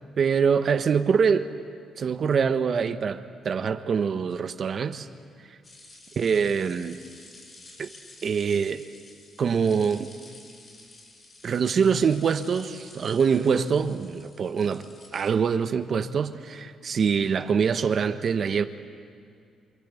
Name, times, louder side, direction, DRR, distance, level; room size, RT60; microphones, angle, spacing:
voice 1, 0.2-1.5 2.0-5.1 6.2-7.0 7.8-7.9 8.2-8.8 9.4-10.1 11.4-18.6, right 6 dB, 50° right, 9 dB, 1.2 m, -24 dB
sound 1, 5.6-15.3, left 2 dB, 40° left, 6.1 m, -50 dB
27.5 x 24.0 x 8.4 m, 2.4 s
cardioid pair, 90°, 0 cm